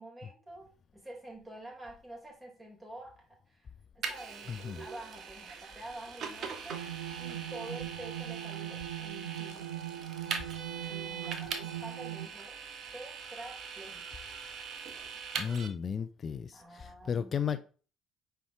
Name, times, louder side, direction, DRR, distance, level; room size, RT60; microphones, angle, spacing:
voice 1, 0.0-6.8 7.2-9.8 10.9-12.6 12.9-14.1 16.5-17.6, right 1 dB, 20° right, 3.8 m, -48 dB
Vehicle, 4.0-15.7, right 6 dB, 50° right, 1.3 m, -42 dB
voice 2, 4.5-4.8 15.4-17.6, left 7 dB, 40° left, 0.5 m, -34 dB
sound 1, 6.7-12.3, right 12 dB, 75° right, 0.4 m, -40 dB
9.1 x 4.7 x 3.6 m
figure-of-eight pair, 55°, 0 cm